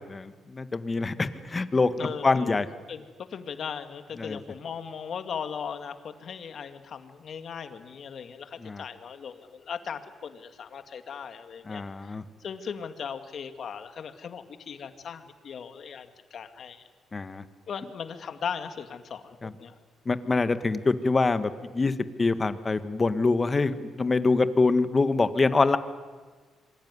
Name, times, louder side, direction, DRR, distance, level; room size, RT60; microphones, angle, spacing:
voice 1, 0.0-2.7 4.2-4.4 8.6-8.8 11.7-12.2 17.1-17.4 19.4-19.5 20.1-21.9 22.2-25.8, left 3 dB, 25° left, 11 dB, 1.7 m, -25 dB
voice 2, 2.0-2.6 2.9-3.0 3.3-12.1 12.4-16.9 17.7-19.8, left 7 dB, 55° left, 8 dB, 2.2 m, -38 dB
26.0 x 23.5 x 9.8 m, 1.4 s
cardioid pair, 90°, 0 cm